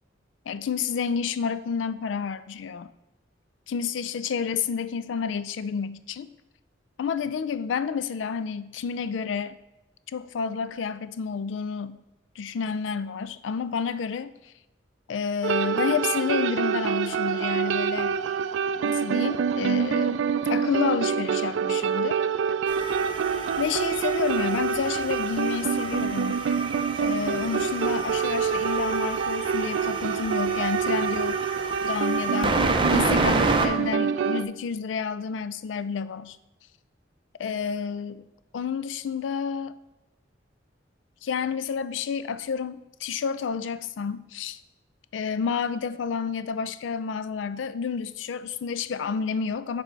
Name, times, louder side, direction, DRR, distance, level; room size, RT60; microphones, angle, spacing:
voice 1, 0.5-2.9 3.7-6.3 7.0-9.6 10.1-12.0 12.4-14.3 15.1-18.2 18.8-20.2 20.5-22.2 23.6-26.5 27.0-31.4 31.8-36.4 37.4-38.3 38.5-39.7 41.2-44.6 45.1-49.8, left 6 dB, 80° left, 0.4 m, -30 dB
sound 1, 15.4-34.4, right 6 dB, 70° right, 0.3 m, -26 dB
sound 2, 22.7-33.7, right 3 dB, 25° right, 0.6 m, -29 dB
7.3 x 3.5 x 5.2 m
head